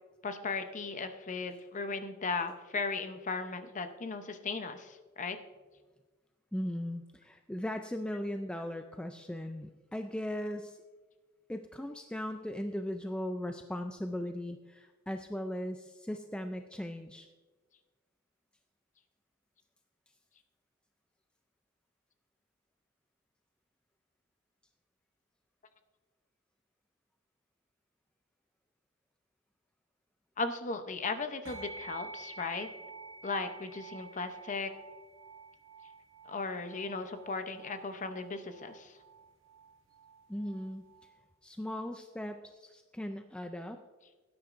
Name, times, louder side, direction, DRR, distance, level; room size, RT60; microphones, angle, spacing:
voice 1, 0.2-5.4 30.4-32.7 33.2-34.7 36.3-38.9, left 4 dB, 35° left, 8 dB, 0.7 m, -36 dB
voice 2, 6.5-10.8 11.5-17.3 40.3-40.8 41.4-43.8, left 1 dB, 5° left, 6 dB, 0.3 m, -38 dB
sound 1, 31.5-41.1, right 4 dB, 65° right, 1.5 m, -50 dB
17.0 x 9.4 x 2.5 m, 1.3 s
head